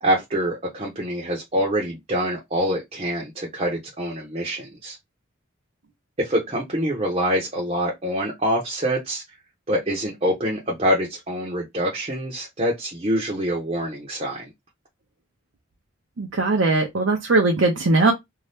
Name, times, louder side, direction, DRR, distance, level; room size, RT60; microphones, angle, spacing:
voice 1, 0.0-5.0 6.2-9.2 9.7-14.5, equal, 30° right, 0.7 m, -25 dB
voice 2, 16.2-18.1, right 2 dB, 70° right, 0.6 m, -19 dB
2.7 x 2.2 x 3.3 m
head